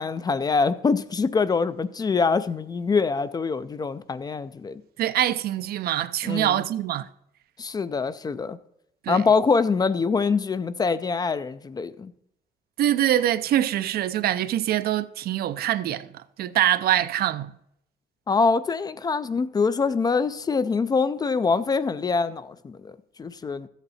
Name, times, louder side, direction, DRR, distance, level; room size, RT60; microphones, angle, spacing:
voice 1, 0.0-4.8 6.2-6.6 7.6-8.6 9.1-12.1 18.3-23.7, left 4 dB, 25° left, 0.3 m, -24 dB
voice 2, 5.0-7.1 9.0-9.3 12.8-16.1 16.4-17.5, right 12 dB, 65° right, 0.5 m, -24 dB
13.0 x 8.1 x 4.1 m
cardioid pair, 145°, 17 cm